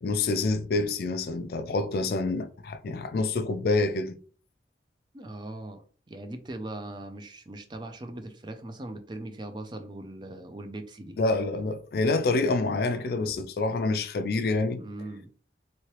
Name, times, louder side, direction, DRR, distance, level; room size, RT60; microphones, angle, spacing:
voice 1, 0.0-4.2 11.2-14.8, left 3 dB, 55° left, 0.3 m, -27 dB
voice 2, 5.1-11.2 14.8-15.3, right 2 dB, 25° right, 0.4 m, -40 dB
3.0 x 2.7 x 2.9 m
head